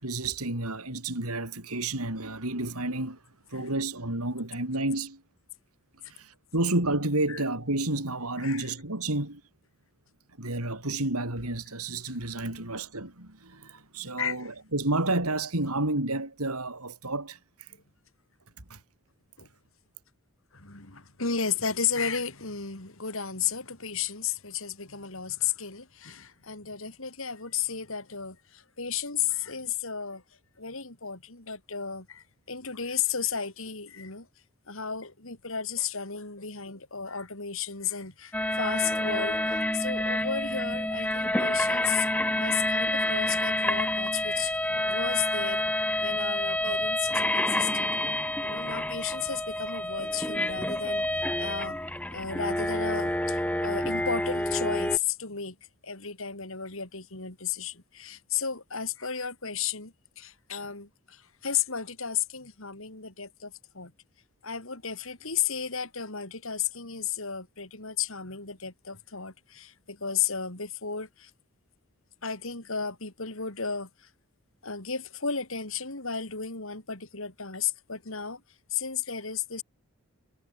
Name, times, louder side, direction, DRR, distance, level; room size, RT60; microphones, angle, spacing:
voice 1, 0.0-3.2 3.5-5.2 6.0-9.4 10.4-17.7 18.7-18.8, right 2 dB, 85° right, 5.4 m, -30 dB
voice 2, 8.4-8.7 14.2-14.5 19.4-19.5 20.5-30.2 30.6-34.3 34.7-42.1 42.4-45.6 46.0-48.0 48.4-51.8 52.1-55.6 55.8-63.9 64.4-71.3 72.2-74.1 74.6-78.4 78.7-79.6, left 7 dB, 65° left, 3.5 m, -33 dB
sound 1, 38.3-55.0, left 1 dB, 5° left, 1.7 m, -28 dB
head